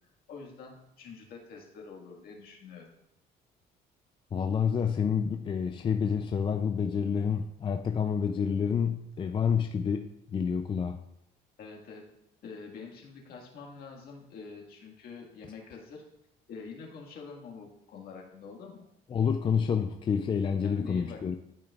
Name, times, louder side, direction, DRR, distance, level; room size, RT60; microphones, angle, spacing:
voice 1, 0.3-2.9 11.6-12.0 12.4-16.0 16.5-18.8 20.6-21.2, left 5 dB, 65° left, 0 dB, 1.8 m, -46 dB
voice 2, 4.3-11.0 19.1-21.4, left 6 dB, 30° left, 6 dB, 0.4 m, -28 dB
12.0 x 5.1 x 2.4 m, 0.80 s
cardioid pair, 110°, 17 cm